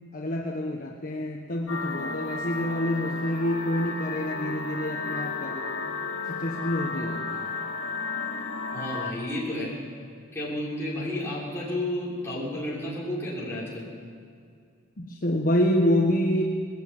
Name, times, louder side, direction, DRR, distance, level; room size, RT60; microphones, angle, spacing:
voice 1, 0.1-5.8 6.3-7.5 15.0-16.4, left 1 dB, 40° left, 0 dB, 1.4 m, -27 dB
sound 1, 1.7-9.1, left 4 dB, 80° left, 2.0 m, -33 dB
voice 2, 8.7-9.7 10.3-13.9, left 1 dB, 15° left, -7 dB, 6.6 m, -31 dB
20.0 x 15.0 x 8.9 m, 2.3 s
head